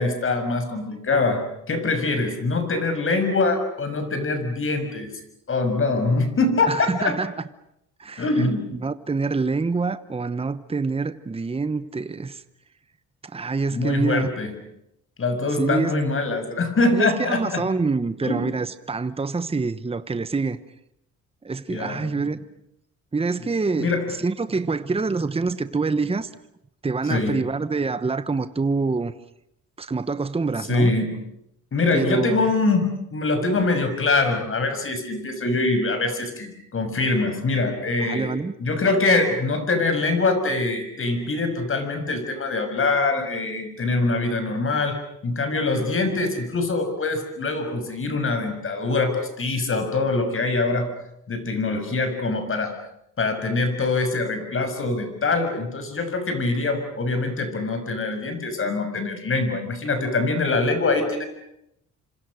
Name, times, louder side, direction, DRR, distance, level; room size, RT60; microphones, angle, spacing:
voice 1, 0.0-1.4 1.7-5.1 5.5-7.2 8.2-8.7 13.7-14.5 15.2-17.6 18.2-18.4 21.7-22.3 23.8-24.0 27.1-27.4 30.7-31.1 31.7-38.3 38.6-45.0 45.2-50.9 51.3-52.7 53.2-61.2, left 3 dB, 45° left, 6.6 m, -23 dB
voice 2, 6.7-7.3 8.0-12.4 13.2-14.3 15.6-15.9 16.9-20.6 21.4-22.4 23.1-26.3 26.8-29.1 29.8-30.9 31.9-32.5 38.0-38.5, right 4 dB, 20° right, 1.1 m, -26 dB
28.5 x 26.0 x 6.6 m
cardioid pair, 90°, 30 cm